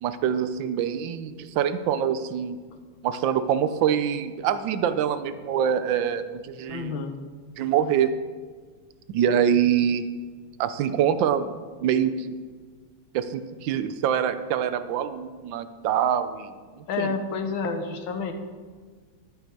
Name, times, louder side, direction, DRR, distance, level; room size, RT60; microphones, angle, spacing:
voice 1, 0.0-2.6 3.0-7.0 7.6-8.1 9.1-10.1 10.6-11.5 11.8-12.3 13.1-16.5 17.0-17.1, right 9 dB, 75° right, 12 dB, 1.3 m, -25 dB
voice 2, 6.7-7.2 16.9-18.3, left 5 dB, 85° left, 7 dB, 1.8 m, -29 dB
11.0 x 8.9 x 4.6 m, 1.5 s
omnidirectional pair, 2.2 m